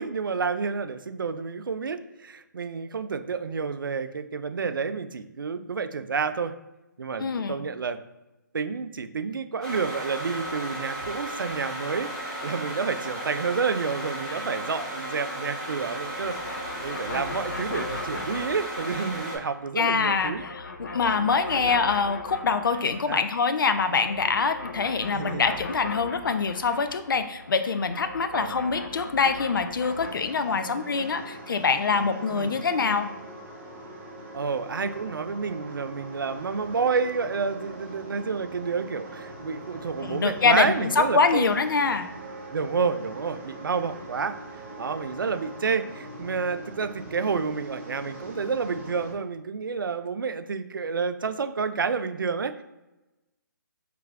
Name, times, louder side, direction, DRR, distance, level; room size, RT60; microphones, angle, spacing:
voice 1, 0.0-6.5 7.0-8.0 8.5-20.4 23.1-23.2 25.1-25.5 28.3-28.6 32.3-32.6 34.3-41.5 42.5-44.4 44.8-52.6, right 5 dB, 90° right, 11 dB, 0.4 m, -29 dB
voice 2, 7.2-7.6 14.3-14.4 19.8-33.1 40.0-42.1, left 5 dB, 80° left, 8 dB, 0.4 m, -25 dB
sound 1, 9.6-19.4, right 1 dB, 5° left, 1.0 m, -35 dB
sound 2, 15.8-19.3 19.6-23.3 23.5-30.1, left 3 dB, 65° left, 1.2 m, -39 dB
sound 3, 29.8-49.1, right 1 dB, 35° right, 1.0 m, -42 dB
4.8 x 3.2 x 2.4 m, 1.0 s
hypercardioid pair, 155°, 11 cm